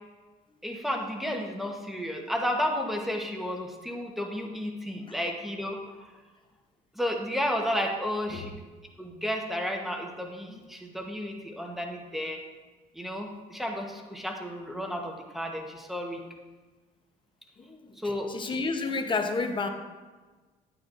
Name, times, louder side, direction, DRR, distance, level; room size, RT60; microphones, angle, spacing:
voice 1, 0.6-5.8 6.9-8.5 9.0-12.4 12.9-16.2 18.0-18.3, equal, ahead, 1 dB, 1.1 m, -32 dB
voice 2, 17.6-17.9 18.3-19.7, left 4 dB, 30° left, 6 dB, 0.9 m, -30 dB
9.2 x 9.0 x 2.6 m, 1.3 s
cardioid pair, 110°, 17 cm